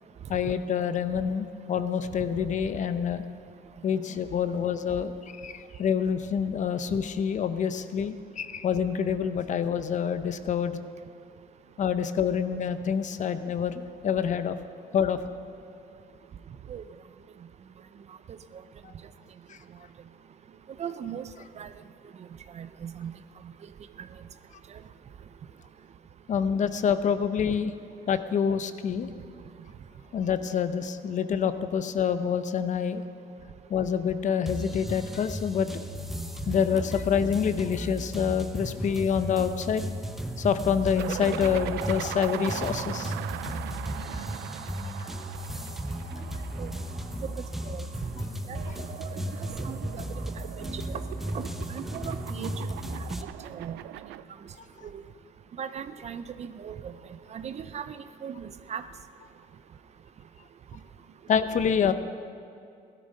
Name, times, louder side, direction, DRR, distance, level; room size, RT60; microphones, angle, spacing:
voice 1, 0.3-3.2 3.8-5.1 5.4-10.8 11.8-14.6 14.9-15.2 18.8-18.9 19.5-19.6 26.3-27.7 28.1-29.1 30.1-33.0 33.7-35.7 36.5-39.8 40.4-43.1 43.5-43.6 44.1-44.2 45.0-45.1 46.1-46.2 54.8-54.9 61.3-61.9, left 7 dB, 45° left, 11 dB, 0.8 m, -27 dB
voice 2, 20.8-21.2 21.6-21.7 22.5-23.1 24.0-24.1 46.6-46.7 47.2-47.3 47.7-47.8 48.5-48.6 49.6-49.8 50.7-50.8 51.3-51.4 51.7-52.6 53.5-53.7 54.8-55.0 55.6-56.9 57.3-58.8, right 8 dB, 40° right, 12 dB, 0.6 m, -37 dB
sound 1, 34.5-53.2, equal, ahead, 0.9 m, -35 dB
sound 2, 41.0-54.2, right 13 dB, 85° right, 0.5 m, -40 dB
16.0 x 12.5 x 5.4 m, 2.5 s
cardioid pair, 110°, 17 cm